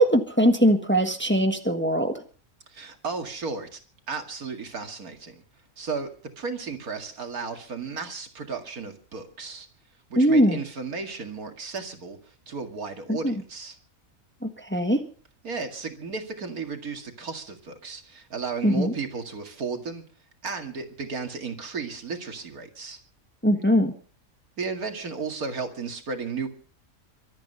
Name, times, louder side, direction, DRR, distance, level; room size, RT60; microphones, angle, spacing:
voice 1, 0.0-2.1 10.2-10.6 13.1-13.3 14.4-15.0 18.6-18.9 23.4-23.9, equal, 10° left, 6 dB, 1.4 m, -21 dB
voice 2, 2.7-3.8 4.1-5.4 5.8-6.1 6.4-9.7 10.1-13.8 15.4-20.0 20.4-23.0 24.6-26.5, right 4 dB, 85° right, 5 dB, 2.6 m, -34 dB
24.5 x 8.7 x 5.5 m, 0.42 s
omnidirectional pair, 1.5 m